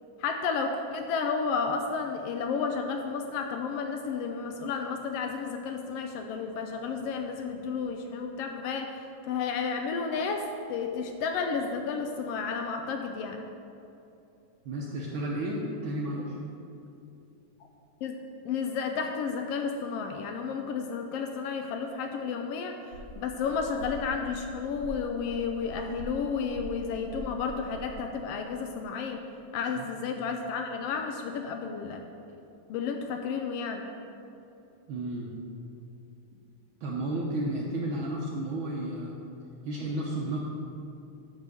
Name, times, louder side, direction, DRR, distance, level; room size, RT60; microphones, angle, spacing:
voice 1, 0.2-10.4 10.7-13.4 18.0-18.1 18.4-22.8 23.2-29.2 29.5-32.0 32.7-33.9, left 5 dB, 85° left, 4 dB, 1.3 m, -32 dB
voice 2, 14.6-16.4 29.8-29.9 34.9-35.3 36.8-39.1 39.6-40.4, right 1 dB, 85° right, -3 dB, 1.1 m, -32 dB
sound 1, 22.9-28.2, right 1 dB, 65° left, 4.0 m, -44 dB
10.5 x 4.8 x 6.8 m, 2.8 s
omnidirectional pair, 3.4 m